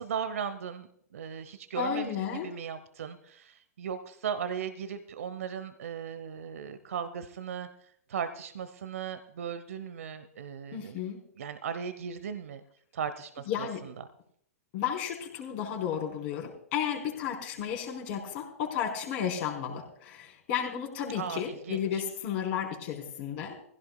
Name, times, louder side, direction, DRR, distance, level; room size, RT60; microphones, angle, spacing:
voice 1, 0.0-7.7 8.1-11.0 11.4-12.6 12.9-14.1 21.1-22.0, right 7 dB, 65° right, 11 dB, 0.9 m, -37 dB
voice 2, 1.8-2.5 10.7-11.2 13.5-13.8 14.7-23.6, left 8 dB, 45° left, 0 dB, 4.0 m, -33 dB
20.0 x 16.0 x 2.3 m, 0.67 s
figure-of-eight pair, 110°, 8 cm